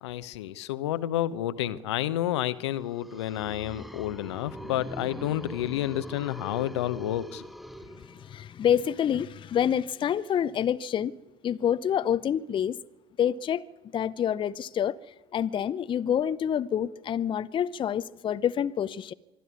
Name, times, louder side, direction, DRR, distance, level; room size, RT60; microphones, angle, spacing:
voice 1, 0.0-7.4, left 13 dB, 75° left, 0.9 m, -30 dB
sound 1, 2.7-8.6, equal, ahead, 0.7 m, -43 dB
voice 2, 8.3-11.1 11.4-12.8 13.2-13.6 13.9-15.0 15.3-19.1, left 9 dB, 35° left, 0.7 m, -27 dB
24.5 x 12.5 x 9.6 m
hypercardioid pair, 65°, 15 cm